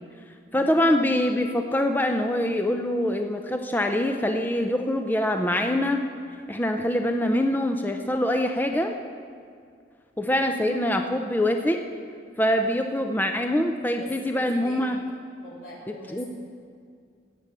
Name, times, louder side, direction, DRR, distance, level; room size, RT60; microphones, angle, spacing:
voice 1, 0.5-6.0 6.5-8.9 10.2-11.8 12.4-15.0 16.1-16.2, left 1 dB, 10° left, 5 dB, 0.5 m, -24 dB
voice 2, 14.0-15.0 15.4-16.3, equal, 85° left, -4 dB, 4.2 m, -43 dB
17.5 x 6.9 x 7.4 m, 2.2 s
head